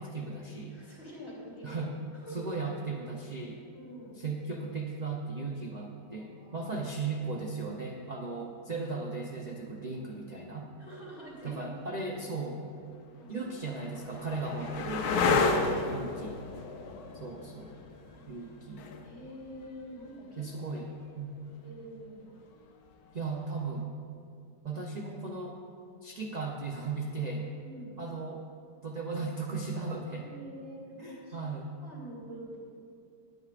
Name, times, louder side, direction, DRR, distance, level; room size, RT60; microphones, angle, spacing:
voice 1, 0.0-0.8 1.6-1.9 2.3-3.6 4.2-10.7 11.4-12.6 13.3-16.4 17.1-17.8 18.3-18.9 20.4-20.9 21.2-21.3 23.1-23.9 24.6-25.6 26.0-27.5 28.0-28.4 28.8-30.2 31.0-31.7, right 3 dB, 55° right, 0 dB, 0.4 m, -36 dB
voice 2, 0.7-1.8 2.1-2.6 3.7-4.2 6.2-6.9 10.8-11.9 13.1-13.4 13.7-13.9 16.3-17.3 19.0-20.9 21.6-22.4 27.3-27.9 30.2-31.4 31.8-32.7, equal, 40° left, -6 dB, 3.5 m, -47 dB
sound 1, 12.0-12.1 12.9-20.5 22.9-23.4, left 4 dB, 65° left, 1.2 m, -32 dB
19.5 x 9.7 x 2.5 m, 2.4 s
omnidirectional pair, 1.8 m